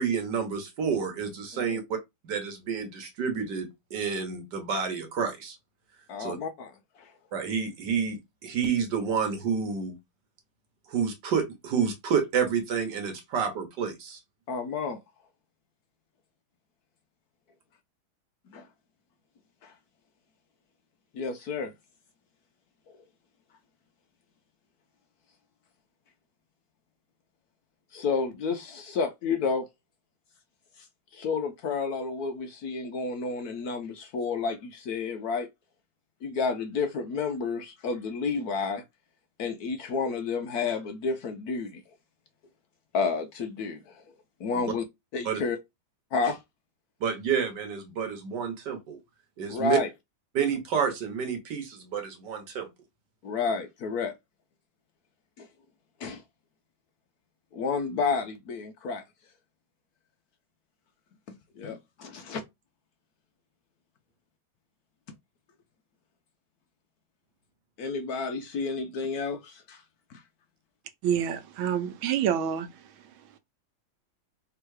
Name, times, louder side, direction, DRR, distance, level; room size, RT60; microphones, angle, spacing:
voice 1, 0.0-1.8 2.2-5.6 6.2-6.4 7.3-9.9 10.9-14.2 44.5-44.7 45.2-45.4 47.0-49.0 49.4-49.8 50.3-52.7, right 6 dB, 60° right, 1.5 m, -29 dB
voice 2, 6.1-7.1 14.5-15.0 18.5-18.7 19.6-19.7 21.1-21.7 22.9-23.0 27.9-29.7 30.8-30.9 31.1-35.5 36.2-38.8 39.4-41.8 42.9-44.0 44.4-44.8 45.1-45.6 46.1-46.4 49.5-49.9 53.2-54.1 55.4-55.5 56.0-56.2 57.5-59.0 61.3-62.4 67.8-69.8 70.1-70.2, left 4 dB, 70° left, 0.9 m, -31 dB
voice 3, 71.0-73.4, right 9 dB, 80° right, 1.5 m, -29 dB
3.6 x 3.0 x 4.7 m
omnidirectional pair, 2.2 m